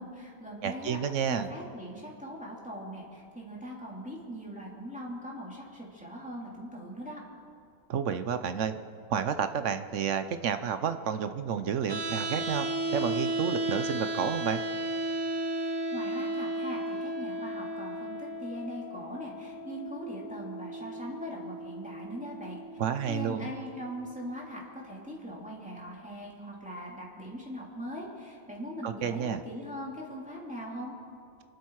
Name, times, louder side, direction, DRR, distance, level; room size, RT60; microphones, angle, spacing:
voice 1, 0.0-1.0 1.3-7.2 15.5-22.6 23.1-30.9, equal, 5° right, -4 dB, 2.9 m, -41 dB
voice 2, 0.6-1.5 7.9-8.7 9.1-12.7 12.9-14.6 22.8-23.5 28.8-29.4, right 7 dB, 60° right, 10 dB, 1.0 m, -30 dB
sound 1, 11.9-23.9, right 1 dB, 20° right, 0.9 m, -35 dB
25.0 x 12.0 x 4.7 m, 2.5 s
omnidirectional pair, 1.6 m